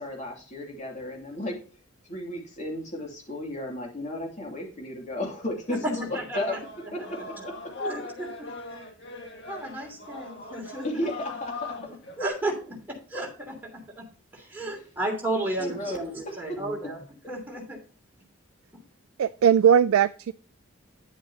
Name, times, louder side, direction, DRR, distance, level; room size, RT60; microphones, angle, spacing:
voice 1, 0.0-1.6 2.1-6.0 6.3-6.5 6.9-7.5 10.8-11.7 15.3-16.0, left 1 dB, 35° left, 2.8 m, -33 dB
sound 1, 5.6-5.7 6.0-12.3, left 3 dB, 55° left, 1.9 m, -40 dB
voice 2, 5.7-6.6 6.9-7.5 7.8-8.5 9.5-10.9 12.2-14.1 14.3-17.8 18.7-18.8, right 1 dB, 10° right, 3.0 m, -33 dB
voice 3, 19.2-20.3, right 8 dB, 80° right, 0.3 m, -19 dB
9.6 x 8.1 x 2.8 m
head